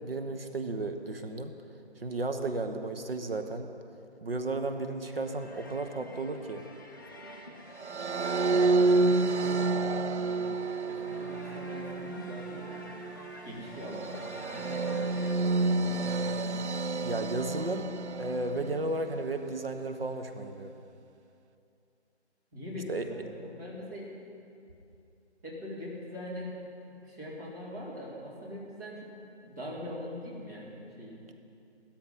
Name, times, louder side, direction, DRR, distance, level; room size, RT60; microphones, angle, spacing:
voice 1, 0.0-1.5 2.0-3.7 4.2-6.6 17.0-20.7 22.9-23.1, right 2 dB, 55° right, 6 dB, 1.2 m, -34 dB
sound 1, 5.0-15.3, left 1 dB, 20° left, 0.8 m, -48 dB
sound 2, 7.8-19.1, right 3 dB, 75° right, 0.7 m, -29 dB
voice 2, 8.4-10.6 10.8-12.9 13.4-16.7 22.5-24.1 25.4-26.6 26.8-29.1 29.4-31.2, left 1 dB, 15° right, -7 dB, 2.3 m, -42 dB
16.5 x 13.0 x 5.7 m, 2.6 s
figure-of-eight pair, 165°, 34 cm